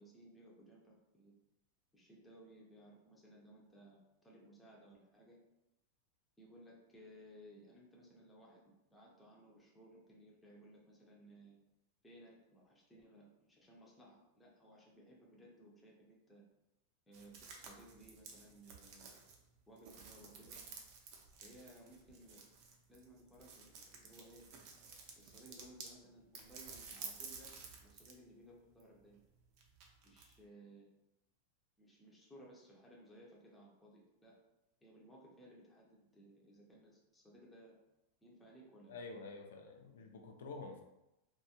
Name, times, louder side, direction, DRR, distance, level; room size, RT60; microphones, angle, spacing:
voice 1, 0.0-1.3 1.9-5.4 6.4-11.6 12.0-16.4 17.1-19.1 19.7-20.6 21.4-22.5 22.9-24.4 25.2-27.5 27.8-29.2 30.0-30.9 31.8-34.4 34.8-37.8 38.2-39.0, right 1 dB, 5° left, -4 dB, 0.5 m, -60 dB
sound 1, 17.1-26.0 26.3-28.2 28.5-30.4, right 5 dB, 45° right, 0.5 m, -53 dB
voice 2, 38.9-40.8, left 3 dB, 85° left, 4 dB, 0.5 m, -48 dB
2.6 x 2.2 x 2.8 m, 0.91 s
supercardioid pair, 155°, 0 cm